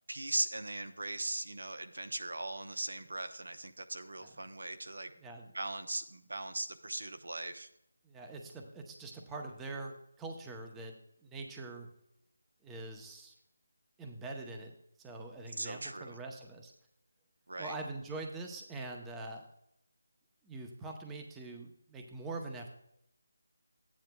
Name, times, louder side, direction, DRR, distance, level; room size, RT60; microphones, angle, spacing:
voice 1, 0.1-5.1 5.5-7.7 15.6-16.2 17.5-17.8, right 2 dB, 85° right, 8 dB, 0.8 m, -39 dB
voice 2, 5.2-5.5 8.0-11.0 11.2-11.9 12.6-13.3 14.0-16.7 17.6-19.4 20.4-22.7, right 2 dB, 5° right, 2 dB, 0.7 m, -44 dB
13.0 x 9.3 x 2.2 m, 0.77 s
figure-of-eight pair, 170°, 0 cm